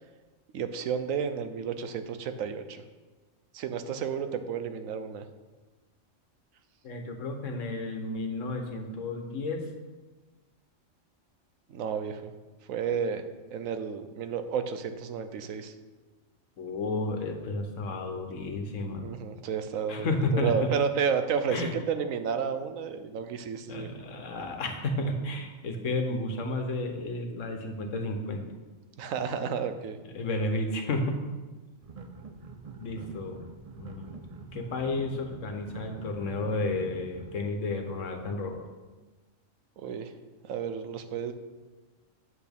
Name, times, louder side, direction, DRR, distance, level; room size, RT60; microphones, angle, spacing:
voice 1, 0.5-2.8 3.5-5.2 11.7-12.3 12.7-13.2 13.5-15.7 19.0-23.9 29.0-30.0 39.8-40.1 40.4-41.3, right 7 dB, 85° right, 9 dB, 1.1 m, -31 dB
voice 2, 6.8-9.6 16.6-19.1 19.9-20.7 21.5-21.7 23.7-28.4 30.1-31.2 32.8-33.5 33.8-34.2 34.5-38.6, left 2 dB, 75° left, 4 dB, 1.3 m, -32 dB
sound 1, 31.8-37.5, right 4 dB, 60° right, 0.3 m, -45 dB
8.3 x 7.0 x 3.5 m, 1.3 s
omnidirectional pair, 1.4 m